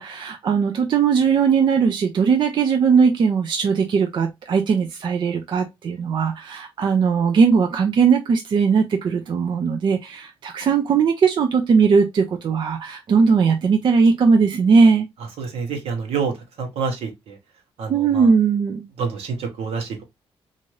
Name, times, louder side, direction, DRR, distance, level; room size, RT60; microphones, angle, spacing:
voice 1, 0.0-15.1 17.9-18.8, right 5 dB, 50° right, 0.4 m, -19 dB
voice 2, 15.4-16.3 16.6-17.4 17.8-18.3 19.0-20.0, right 5 dB, 75° right, 1.0 m, -27 dB
2.6 x 2.5 x 3.0 m
cardioid pair, 85°, 10 cm